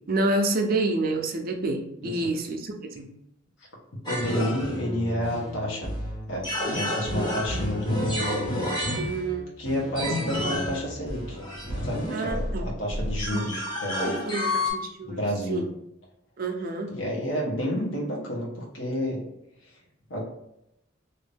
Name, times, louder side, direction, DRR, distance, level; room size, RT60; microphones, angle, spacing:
voice 1, 0.1-3.1 9.0-9.5 12.1-12.7 13.3-13.4 14.2-15.2 15.5-15.7 16.4-16.9, right 2 dB, 45° right, 4 dB, 0.5 m, -28 dB
voice 2, 4.1-5.9 6.3-8.6 9.6-11.4 11.8-14.2 15.1-15.6 16.9-19.2 19.6-19.7 20.1-20.2, equal, 65° left, -3 dB, 1.1 m, -30 dB
sound 1, 4.1-14.7, left 1 dB, 25° left, 0.8 m, -30 dB
3.0 x 2.6 x 3.3 m, 0.83 s
head